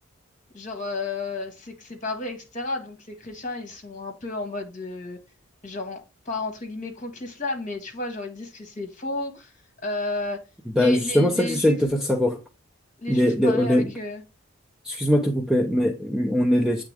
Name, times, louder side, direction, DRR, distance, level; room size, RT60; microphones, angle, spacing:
voice 1, 0.5-5.2 5.6-9.5 9.8-10.4 10.7-11.8 13.0-14.2, left 2 dB, 35° left, 1.6 m, -32 dB
voice 2, 10.8-12.4 13.1-13.9 14.8-16.8, left 1 dB, ahead, 0.6 m, -21 dB
8.1 x 3.6 x 3.4 m
head